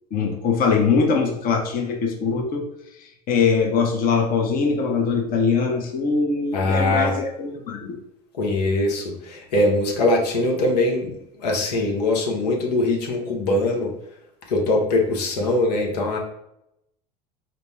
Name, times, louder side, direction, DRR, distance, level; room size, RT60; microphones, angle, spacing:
voice 1, 0.1-2.6 3.0-8.0, left 5 dB, 45° left, 1 dB, 0.8 m, -22 dB
voice 2, 6.5-7.2 8.4-13.9 14.5-16.2, left 2 dB, 80° left, 0 dB, 0.9 m, -22 dB
4.0 x 2.0 x 3.3 m, 0.80 s
hypercardioid pair, 80°, 20 cm